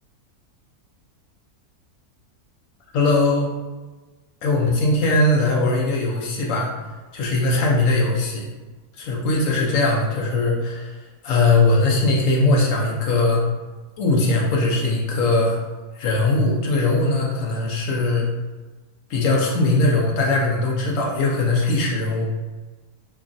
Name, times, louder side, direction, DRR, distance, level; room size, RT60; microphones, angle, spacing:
voice 1, 2.9-3.5 4.4-6.7 7.1-8.5 9.0-10.9 11.2-13.4 14.0-15.6 16.0-18.3 19.1-22.3, left 2 dB, 70° left, -2 dB, 0.8 m, -20 dB
3.0 x 2.3 x 2.5 m, 1.3 s
omnidirectional pair, 1.6 m